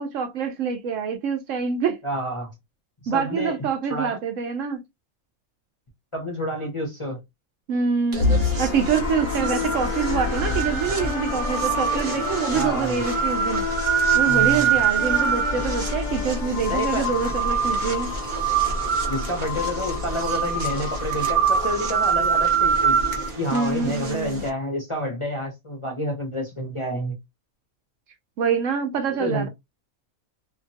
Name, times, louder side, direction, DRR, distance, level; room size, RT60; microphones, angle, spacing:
voice 1, 0.0-2.0 3.1-4.8 7.7-13.6 14.1-18.1 23.5-24.4 28.4-29.5, right 6 dB, 70° right, 0.9 m, -25 dB
voice 2, 2.0-2.5 3.1-3.6 3.9-4.2 6.1-7.2 12.5-13.0 14.3-14.7 16.7-17.1 19.1-23.0 23.4-27.1 29.2-29.5, equal, 30° left, 0.6 m, -29 dB
sound 1, 8.1-24.5, right 5 dB, 40° right, 0.8 m, -24 dB
sound 2, 8.2-17.2, left 5 dB, 70° left, 1.0 m, -30 dB
2.8 x 2.3 x 2.7 m
omnidirectional pair, 1.5 m